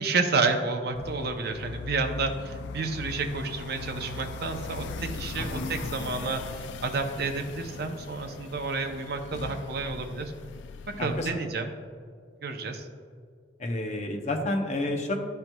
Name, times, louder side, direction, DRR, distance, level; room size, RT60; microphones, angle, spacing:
voice 1, 0.0-10.3 11.0-11.7 12.4-12.8, right 3 dB, 55° right, 5 dB, 0.6 m, -30 dB
sound 1, 0.9-11.3, left 4 dB, 70° left, 0.3 m, -40 dB
voice 2, 5.4-5.7 11.0-11.4 13.6-15.1, left 1 dB, 40° left, 3 dB, 0.7 m, -30 dB
11.5 x 4.5 x 2.2 m, 2.1 s
head